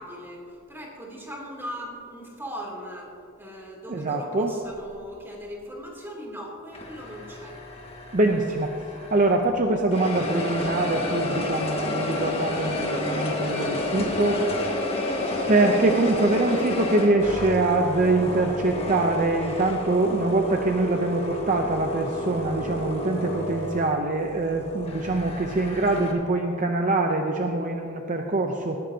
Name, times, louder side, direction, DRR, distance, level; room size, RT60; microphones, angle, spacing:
voice 1, 0.0-7.6, equal, 10° right, -3 dB, 2.9 m, -39 dB
voice 2, 3.9-4.5 8.1-14.5 15.5-28.8, right 2 dB, 40° right, 3 dB, 0.7 m, -24 dB
sound 1, 6.7-9.5 9.9-26.1, left 1 dB, 30° left, 1.7 m, -30 dB
19.0 x 14.0 x 2.8 m, 2.7 s
head